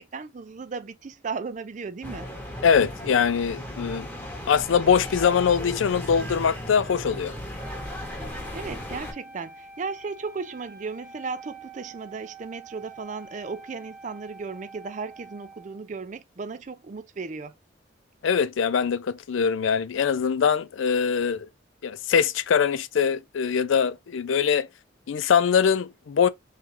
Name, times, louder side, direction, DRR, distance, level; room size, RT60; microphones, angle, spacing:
voice 1, 0.0-2.3 8.5-17.5, right 4 dB, 40° right, 0.4 m, -35 dB
sound 1, 2.0-9.1, left 1 dB, 10° left, 1.0 m, -36 dB
voice 2, 2.6-4.1 4.5-7.3 18.2-21.5 21.8-24.7 25.1-26.3, left 7 dB, 90° left, 0.4 m, -22 dB
Wind instrument woodwind instrument, 7.5-15.8, right 3 dB, 55° right, 1.2 m, -46 dB
3.6 x 3.2 x 2.9 m
head